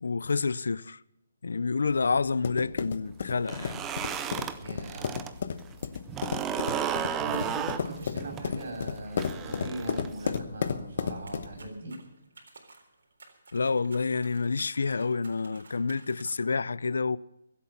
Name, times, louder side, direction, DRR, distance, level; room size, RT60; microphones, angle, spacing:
voice 1, 0.0-1.0 1.4-3.8 13.5-17.2, left 4 dB, 85° left, 0.6 m, -28 dB
sound 1, 1.9-11.7, left 6 dB, 45° left, 1.0 m, -34 dB
sound 2, 3.4-5.3 5.6-10.4, right 8 dB, 10° right, 0.5 m, -33 dB
voice 2, 4.6-5.1 7.2-12.0, right 1 dB, 60° right, 7.1 m, -39 dB
sound 3, 11.3-16.6, right 3 dB, 75° right, 3.8 m, -54 dB
22.5 x 8.4 x 5.8 m
hypercardioid pair, 175°, 0 cm